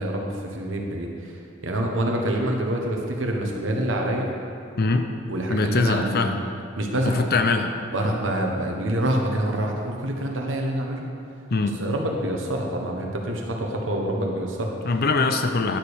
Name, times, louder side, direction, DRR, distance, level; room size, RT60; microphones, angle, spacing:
voice 1, 0.0-1.3 1.6-4.3 5.3-6.3 6.8-7.3 7.9-11.1 11.8-14.8, right 1 dB, 70° right, 1 dB, 1.3 m, -26 dB
voice 2, 4.8-5.1 5.5-6.5 7.0-7.8 11.5-11.8 14.8-15.8, left 3 dB, 55° left, 7 dB, 0.6 m, -22 dB
10.5 x 5.1 x 6.3 m, 2.5 s
head